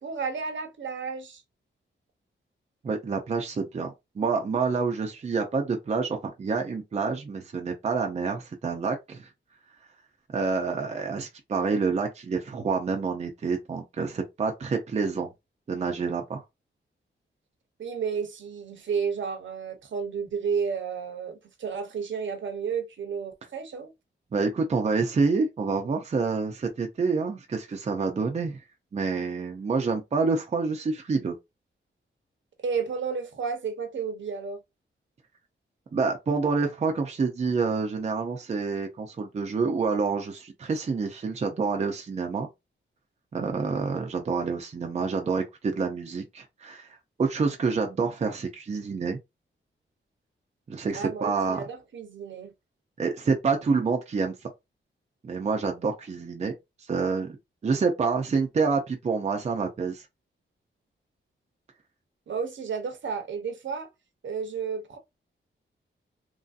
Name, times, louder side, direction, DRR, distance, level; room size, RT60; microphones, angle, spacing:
voice 1, 0.0-1.4 17.8-23.9 32.6-34.6 50.9-52.5 62.3-63.9 64.2-65.0, right 6 dB, 70° right, 0.8 m, -32 dB
voice 2, 2.8-9.3 10.3-15.3 15.7-16.4 24.3-28.6 28.9-31.3 35.9-42.5 43.3-49.2 50.7-51.6 53.0-54.5 55.2-56.5 56.9-57.3 57.6-60.0, right 4 dB, 35° right, 0.5 m, -27 dB
3.0 x 2.6 x 2.4 m
wide cardioid pair, 165°, 20 cm